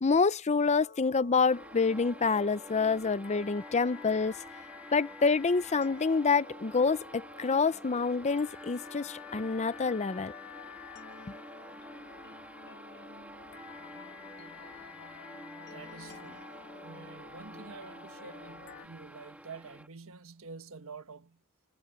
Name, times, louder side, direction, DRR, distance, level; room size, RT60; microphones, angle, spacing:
voice 1, 0.0-4.4 4.9-10.3, left 4 dB, 30° left, 0.6 m, -27 dB
sound 1, 0.8-18.9, left 6 dB, 55° left, 1.6 m, -50 dB
sound 2, 1.5-19.9, right 1 dB, 5° right, 2.2 m, -49 dB
voice 2, 15.7-21.4, right 4 dB, 70° right, 1.5 m, -48 dB
head